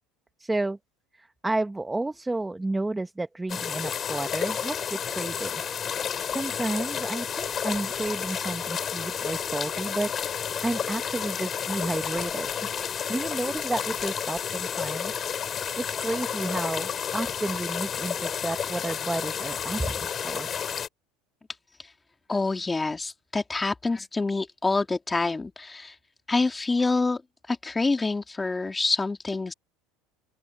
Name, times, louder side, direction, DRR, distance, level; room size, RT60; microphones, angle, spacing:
voice 1, 0.4-0.8 1.1-5.8 6.3-12.5 13.1-15.1 15.5-20.5, right 2 dB, 10° right, 1.1 m, -31 dB
sound 1, 3.5-20.9, left 8 dB, 35° left, 5.4 m, -31 dB
voice 2, 22.3-25.9 26.3-27.2 27.5-29.5, left 3 dB, 15° left, 2.8 m, -26 dB
open air
supercardioid pair, 100°, 0 cm